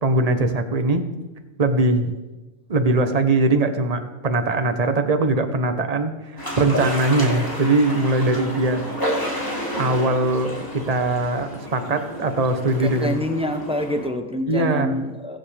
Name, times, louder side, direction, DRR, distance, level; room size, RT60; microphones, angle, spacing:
voice 1, 0.0-1.1 1.6-2.1 2.7-8.8 9.7-13.2 14.5-14.9, right 2 dB, 30° right, 7 dB, 1.0 m, -21 dB
sound 1, 6.4-14.1, equal, 15° left, 2.9 m, -30 dB
voice 2, 12.0-12.4 12.8-15.4, left 1 dB, 5° right, 5 dB, 0.6 m, -27 dB
22.5 x 7.9 x 3.5 m, 1.2 s
omnidirectional pair, 1.5 m